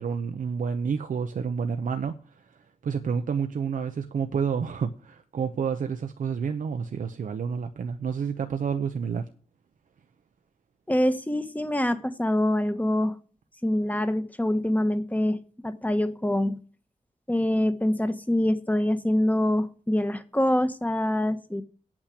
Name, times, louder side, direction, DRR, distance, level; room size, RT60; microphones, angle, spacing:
voice 1, 0.0-2.2 2.8-9.2, right 6 dB, 85° right, 7 dB, 0.8 m, -29 dB
voice 2, 10.9-13.2 13.6-16.6 17.3-21.6, left 1 dB, 10° left, 9 dB, 1.3 m, -25 dB
8.9 x 7.3 x 8.4 m, 0.41 s
cardioid pair, 70°, 13 cm